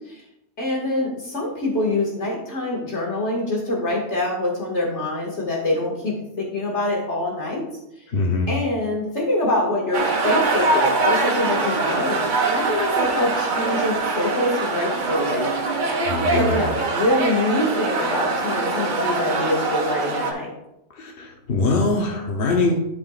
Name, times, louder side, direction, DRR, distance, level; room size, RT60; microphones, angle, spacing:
voice 1, 0.6-7.6 8.5-12.2 12.5-15.5 16.3-20.5, left 1 dB, 70° left, -2 dB, 2.4 m, -25 dB
voice 2, 8.1-8.5 16.1-16.7 20.9-22.7, left 3 dB, 55° left, 0 dB, 1.1 m, -22 dB
sound 1, 9.9-20.3, right 3 dB, 45° right, 0.9 m, -23 dB
11.5 x 5.0 x 2.5 m, 0.83 s
omnidirectional pair, 1.2 m